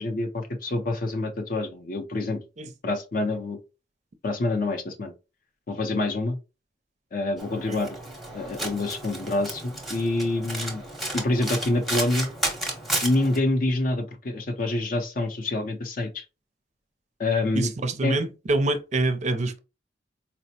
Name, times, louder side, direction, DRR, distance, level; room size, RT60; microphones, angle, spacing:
voice 1, 0.0-2.4 2.8-3.6 4.2-5.1 5.7-6.4 7.1-8.0 8.3-10.8 11.1-12.3 13.0-16.2 17.2-17.7 18.0-18.2, left 2 dB, 50° left, 0.6 m, -26 dB
Domestic sounds home sounds, 7.4-13.4, right 1 dB, ahead, 0.7 m, -32 dB
voice 2, 17.5-19.6, right 2 dB, 40° right, 0.4 m, -26 dB
4.2 x 2.0 x 2.7 m
head